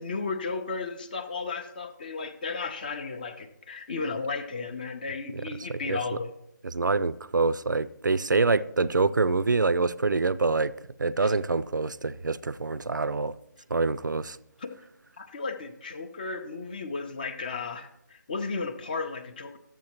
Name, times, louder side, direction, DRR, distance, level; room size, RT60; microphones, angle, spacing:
voice 1, 0.0-6.3 11.2-11.3 14.6-14.7 15.2-19.6, left 4 dB, 25° left, 0.5 m, -34 dB
voice 2, 6.6-10.7 11.0-13.3 13.7-14.4, right 3 dB, 70° right, 0.4 m, -26 dB
12.5 x 7.3 x 2.9 m
figure-of-eight pair, 150°, 10 cm